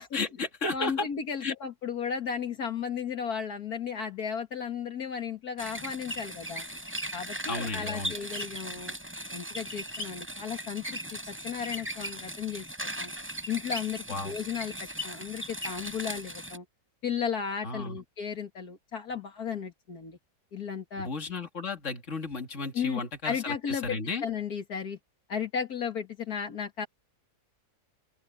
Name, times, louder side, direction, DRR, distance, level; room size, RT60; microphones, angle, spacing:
voice 1, 0.0-1.1 1.4-1.5 7.5-8.1 14.1-14.4 17.6-18.0 21.0-24.2, left 3 dB, 50° left, 2.7 m, -34 dB
voice 2, 0.7-6.7 7.1-8.9 9.3-13.1 13.5-16.6 17.0-20.2 20.5-21.1 22.7-25.0 25.3-26.9, left 7 dB, 75° left, 2.3 m, -34 dB
sound 1, 5.6-16.6, equal, 5° right, 4.5 m, -38 dB
open air
omnidirectional pair, 1.6 m